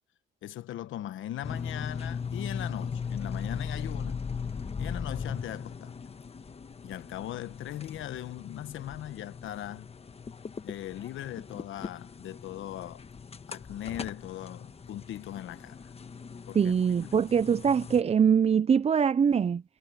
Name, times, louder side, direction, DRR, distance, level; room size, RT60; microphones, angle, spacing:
voice 1, 0.4-4.2 4.8-6.0 6.8-9.9 10.6-13.0 13.5-15.8 16.5-16.7, left 12 dB, 80° left, 1.2 m, -39 dB
sound 1, 1.4-18.0, left 6 dB, 30° left, 1.2 m, -39 dB
voice 2, 16.5-19.6, right 7 dB, 30° right, 0.5 m, -23 dB
cardioid pair, 90°, 20 cm